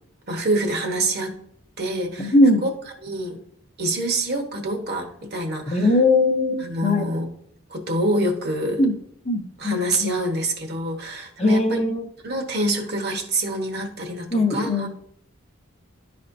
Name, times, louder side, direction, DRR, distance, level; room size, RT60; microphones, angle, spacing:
voice 1, 0.3-1.3 1.8-2.3 2.6-2.7 3.0-3.4 3.8-5.9 6.6-7.3 7.7-8.8 9.6-11.8 12.2-14.9, right 1 dB, 50° right, 3 dB, 1.2 m, -26 dB
voice 2, 2.2-2.6 5.7-7.1 8.8-8.9 9.3-10.2 11.4-12.0 14.3-14.9, left 2 dB, 30° left, 4 dB, 0.7 m, -20 dB
11.5 x 4.3 x 2.6 m, 0.68 s
head